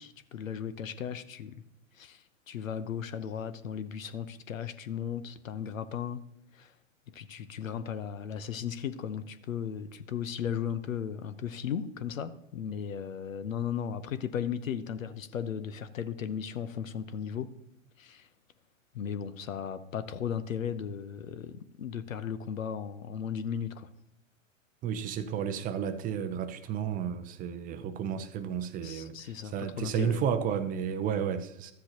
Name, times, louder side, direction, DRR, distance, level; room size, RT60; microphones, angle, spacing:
voice 1, 0.0-1.6 1.9-6.2 6.5-6.7 7.1-17.5 18.0-18.3 18.9-23.9 28.8-30.2, left 8 dB, 80° left, 0.8 m, -36 dB
voice 2, 24.8-31.7, right 8 dB, 20° right, 0.5 m, -32 dB
13.0 x 7.7 x 2.9 m
hypercardioid pair, 110°, 39 cm